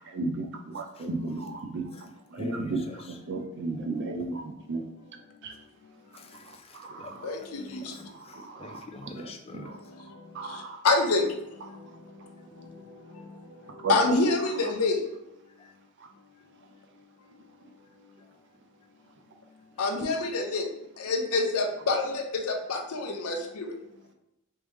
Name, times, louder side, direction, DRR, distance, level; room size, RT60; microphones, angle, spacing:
voice 1, 0.1-1.8 2.3-2.8 3.3-4.8 5.4-5.5 6.9-7.0 8.6-8.7 9.1-9.2 9.5-9.7 10.4-10.8 13.8-13.9, right 3 dB, 55° right, 4 dB, 0.5 m, -33 dB
voice 2, 1.0-1.4 1.9-2.0 2.4-3.2 6.1-7.1 7.4-9.7 15.6-15.7, left 2 dB, 25° left, 4 dB, 0.4 m, -44 dB
voice 3, 7.2-8.0 9.2-15.1 19.8-20.7 21.0-23.8, left 3 dB, 90° left, 4 dB, 0.6 m, -29 dB
3.3 x 3.2 x 3.1 m, 0.89 s
head